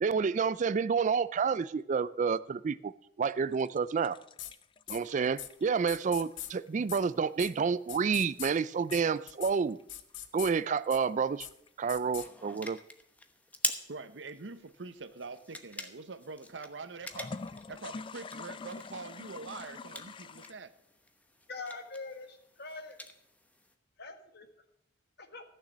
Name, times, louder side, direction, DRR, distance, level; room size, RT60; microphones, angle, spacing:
voice 1, 0.0-2.9 3.2-4.2 4.9-9.8 10.3-11.5 11.8-12.8, right 5 dB, 40° right, 17 dB, 0.4 m, -29 dB
sound 1, 3.2-6.8 8.2-10.2 10.8-11.7 17.0-20.5, left 4 dB, 30° left, 0.3 m, -46 dB
sound 2, 4.4-4.5 4.9-5.0 5.4-5.5 5.9-6.5 6.9-7.0 7.4-7.5 7.9-8.5 8.9-9.0 9.3-9.5 9.9-10.5 10.9-11.0 11.4-11.5 11.9-12.3, left 12 dB, 90° left, 0.9 m, -41 dB
sound 3, 5.3-23.7, left 2 dB, 10° left, 0.9 m, -46 dB
voice 2, 13.9-20.7, right 4 dB, 80° right, 12 dB, 0.9 m, -44 dB
voice 3, 21.5-23.0 24.0-24.4 25.3-25.4, left 3 dB, 60° left, 6 dB, 1.6 m, -43 dB
14.5 x 6.6 x 7.2 m, 0.76 s
head